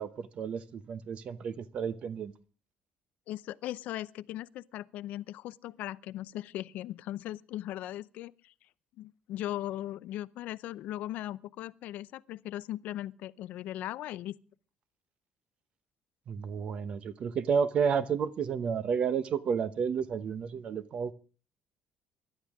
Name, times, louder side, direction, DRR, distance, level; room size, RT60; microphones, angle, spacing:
voice 1, 0.0-2.3 16.3-21.1, right 6 dB, 40° right, 0.9 m, -31 dB
voice 2, 3.3-8.5 9.0-14.4, left 14 dB, 70° left, 0.6 m, -38 dB
25.0 x 12.0 x 3.6 m
cardioid pair, 175°, 3 cm